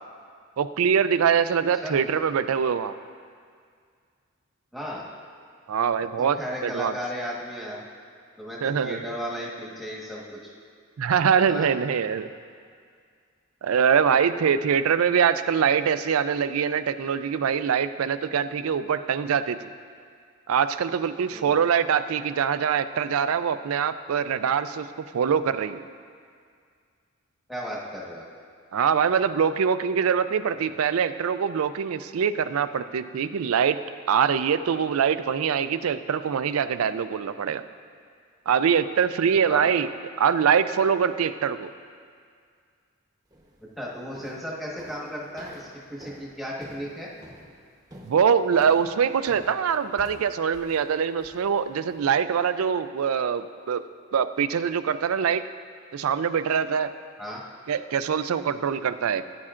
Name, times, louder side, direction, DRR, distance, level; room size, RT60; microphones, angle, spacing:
voice 1, 0.6-2.9 5.7-6.4 6.6-6.9 8.6-9.1 11.0-12.3 13.6-19.6 20.5-24.9 25.1-25.8 28.7-33.8 34.1-37.6 38.5-39.9 40.2-41.7 48.1-53.8 54.1-55.4 55.9-56.9 57.7-59.2, right 7 dB, 90° right, 12 dB, 0.4 m, -23 dB
voice 2, 4.7-5.0 6.2-7.8 8.4-10.5 11.5-11.7 21.3-21.5 27.5-28.2 39.5-39.7 43.8-47.1 57.2-57.4, equal, ahead, -5 dB, 1.3 m, -35 dB
sound 1, 43.3-43.6 44.1-52.1, equal, 20° right, 0.9 m, -49 dB
17.0 x 9.8 x 2.5 m, 2.1 s
head